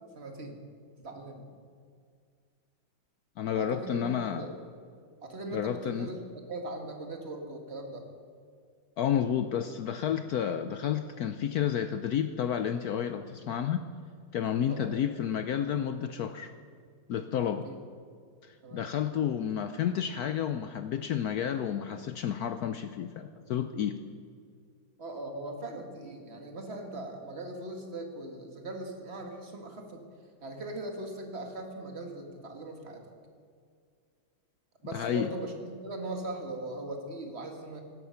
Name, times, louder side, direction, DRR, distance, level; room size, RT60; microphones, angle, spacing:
voice 1, 0.2-0.6 1.0-1.5 3.5-4.5 5.2-6.2 6.5-8.0 14.7-14.9 17.5-17.8 18.6-18.9 25.0-30.1 30.4-33.1 34.8-37.8, right 2 dB, 30° right, 3 dB, 1.9 m, -40 dB
voice 2, 3.4-4.5 5.5-6.1 9.0-13.9 14.3-16.5 17.1-17.7 18.4-24.0 34.9-35.3, left 9 dB, 90° left, 9 dB, 0.8 m, -31 dB
16.0 x 12.5 x 5.7 m, 2.2 s
omnidirectional pair, 2.3 m